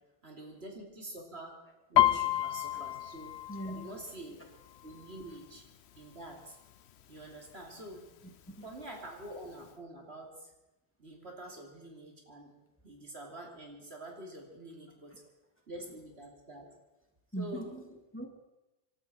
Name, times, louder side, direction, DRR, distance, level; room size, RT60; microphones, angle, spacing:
voice 1, 0.2-1.6 1.9-3.3 3.7-4.4 4.8-5.6 6.0-6.6 7.1-8.1 8.6-10.5 11.0-12.5 12.8-15.2 15.7-16.7 17.4-17.7, right 1 dB, 80° right, 0 dB, 3.3 m, -46 dB
Piano, 2.0-5.6 6.0-6.4 6.7-7.3 7.9-8.0 8.3-9.3 9.7-9.8, left 13 dB, 90° left, 1.0 m, -30 dB
voice 2, 3.5-4.2 8.6-8.7 8.9-9.0 17.3-18.3, right 1 dB, 10° left, 1 dB, 2.5 m, -41 dB
26.5 x 12.5 x 4.4 m, 0.99 s
omnidirectional pair, 1.1 m